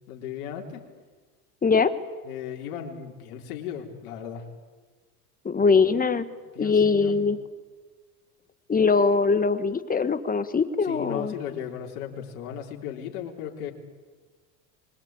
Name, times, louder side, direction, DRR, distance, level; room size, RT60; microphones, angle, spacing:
voice 1, 0.1-0.8 2.2-4.5 6.5-7.2 10.8-13.7, left 9 dB, 75° left, 1 dB, 4.0 m, -36 dB
voice 2, 5.4-6.2 6.6-7.4 8.7-11.3, left 4 dB, 20° left, 12 dB, 1.5 m, -22 dB
25.0 x 22.0 x 9.0 m, 1.4 s
supercardioid pair, 110°, 45 cm